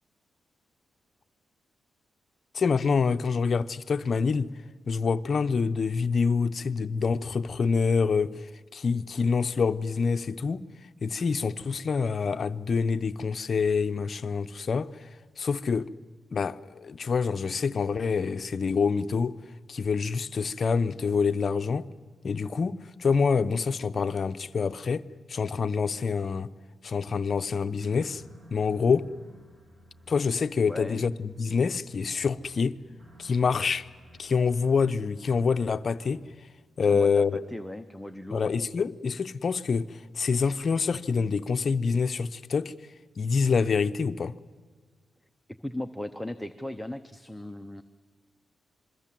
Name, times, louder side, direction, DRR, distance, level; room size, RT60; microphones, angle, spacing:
voice 1, 2.5-4.5 4.9-10.6 11.0-15.1 15.4-15.9 16.3-19.4 19.7-21.9 22.2-26.5 26.8-28.2 28.5-29.1 30.1-32.8 33.2-33.9 34.2-36.3 36.8-37.4 38.3-42.7 43.2-44.4, left 5 dB, 50° left, 0.7 m, -26 dB
sound 1, 27.8-36.4, right 1 dB, 45° right, 6.3 m, -56 dB
voice 2, 30.7-31.0 36.8-38.4 45.6-47.8, left 1 dB, ahead, 0.7 m, -37 dB
27.5 x 22.0 x 7.6 m
cardioid pair, 115°, 0 cm